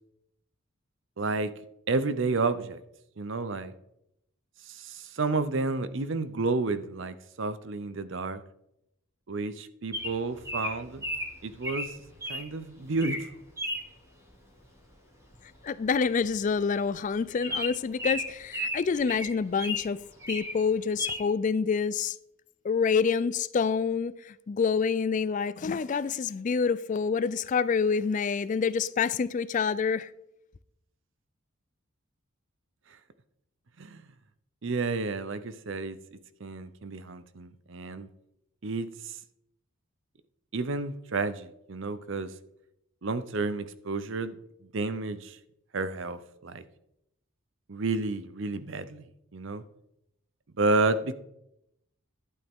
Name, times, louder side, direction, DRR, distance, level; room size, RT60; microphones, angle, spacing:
voice 1, 1.2-1.5 1.9-2.8 3.2-3.7 4.7-8.4 9.3-11.0 11.4-11.9 12.3-13.3 33.8-34.0 34.6-36.0 36.4-38.1 38.6-39.1 40.5-42.3 43.0-44.4 44.7-45.4 45.7-46.6 47.7-49.0 49.3-49.6 50.6-51.1, right 3 dB, 60° right, 0.6 m, -31 dB
Bird vocalization bird call bird song, 9.9-12.5 12.9-13.3 13.6-13.9 15.3-15.6 15.8-15.9 16.2-16.4 16.8-16.9 17.4-19.9 20.2-20.6 21.0-21.2, left 1 dB, 15° right, 1.5 m, -34 dB
voice 2, 15.4-22.2 22.6-30.1, left 5 dB, 35° left, 0.3 m, -27 dB
11.5 x 8.3 x 3.6 m
head